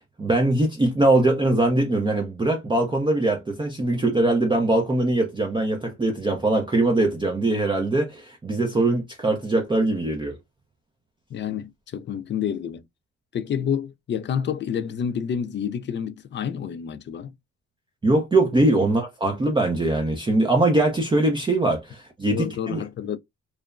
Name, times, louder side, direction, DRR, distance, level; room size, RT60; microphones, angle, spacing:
voice 1, 0.2-10.4 18.0-22.8, right 2 dB, 15° right, 0.5 m, -22 dB
voice 2, 11.3-12.8 13.3-17.3 22.3-23.2, left 8 dB, 40° left, 0.4 m, -29 dB
3.0 x 2.1 x 2.3 m
cardioid pair, 90°, 30 cm